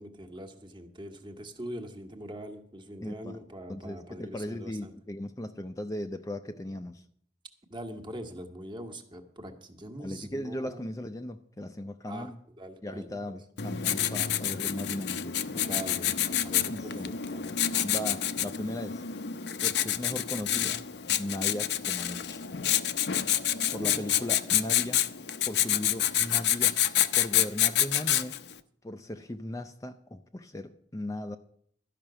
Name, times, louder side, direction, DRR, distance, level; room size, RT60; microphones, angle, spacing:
voice 1, 0.0-4.9 7.7-10.9 12.1-12.3 12.6-13.4 15.6-17.6 23.8-24.0, right 1 dB, 25° right, 1.3 m, -43 dB
voice 2, 3.0-3.4 3.7-7.0 10.0-12.4 12.8-15.7 16.7-17.2 17.8-19.0 19.6-20.9 21.2-22.7 23.7-25.0 25.5-26.8 27.1-28.4 28.8-31.4, left 1 dB, 20° left, 0.5 m, -37 dB
Writing, 13.6-28.5, left 11 dB, 70° left, 0.6 m, -28 dB
12.5 x 5.9 x 8.8 m
head